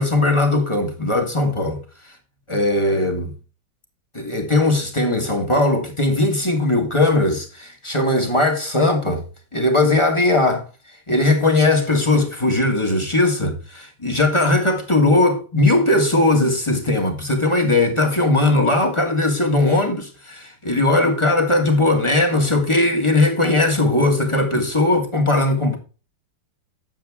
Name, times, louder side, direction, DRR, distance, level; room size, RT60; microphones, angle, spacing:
voice 1, 0.0-1.8 2.5-3.3 4.1-9.2 9.5-10.6 11.1-25.8, left 2 dB, 15° left, 1.5 m, -19 dB
9.1 x 7.3 x 3.5 m
omnidirectional pair, 2.1 m